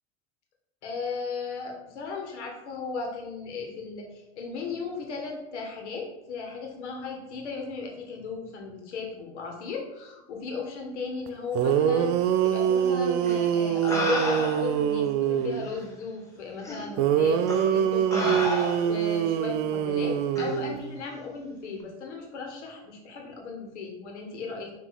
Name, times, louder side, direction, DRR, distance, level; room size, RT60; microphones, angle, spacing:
voice 1, 0.8-24.7, left 4 dB, 80° left, 1 dB, 1.7 m, -36 dB
sound 1, 11.3-11.4 11.5-15.7 17.0-21.0, right 9 dB, 50° right, 0.5 m, -24 dB
sound 2, 13.2-13.4 13.9-14.8 15.7-15.8 16.6-16.8 17.5-17.7 18.1-19.1 20.4-20.6, left 1 dB, 10° left, 1.3 m, -31 dB
6.1 x 3.2 x 4.8 m, 0.95 s
hypercardioid pair, 105°, 34 cm